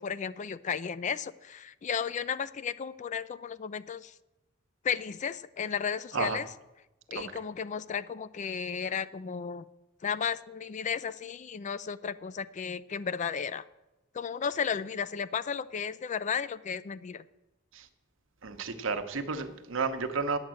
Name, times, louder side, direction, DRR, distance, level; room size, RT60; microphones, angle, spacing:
voice 1, 0.0-4.1 4.8-6.5 7.1-9.7 10.0-13.6 14.1-17.2, left 6 dB, 35° left, 16 dB, 0.4 m, -34 dB
voice 2, 18.4-20.4, right 4 dB, 70° right, 8 dB, 0.9 m, -31 dB
9.6 x 8.0 x 7.6 m, 0.98 s
head